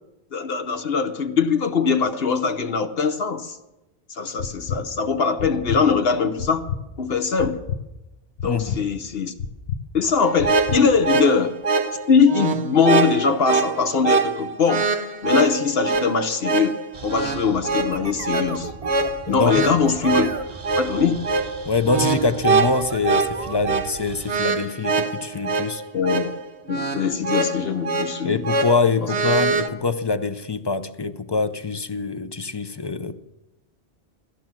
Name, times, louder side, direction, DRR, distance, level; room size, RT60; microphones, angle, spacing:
voice 1, 0.3-3.6 4.1-6.7 7.0-7.6 8.4-9.3 9.9-11.6 12.1-16.8 17.0-18.7 19.3-20.3 20.8-21.3 25.9-26.3 26.7-28.4, left 5 dB, 65° left, 1.1 m, -21 dB
sound 1, 4.4-4.8 5.4-5.8 6.4-6.8 7.4-7.8 8.4-8.8 9.4-9.8 10.4-10.8, left 7 dB, 90° left, 1.1 m, -28 dB
voice 2, 8.4-8.8 19.3-19.6 21.7-25.8 28.2-33.2, left 4 dB, 30° left, 0.5 m, -24 dB
sound 2, 10.2-29.7, right 4 dB, 85° right, 1.3 m, -24 dB
sound 3, 16.9-24.4, right 4 dB, 35° right, 0.9 m, -37 dB
17.0 x 13.5 x 6.1 m
omnidirectional pair, 1.1 m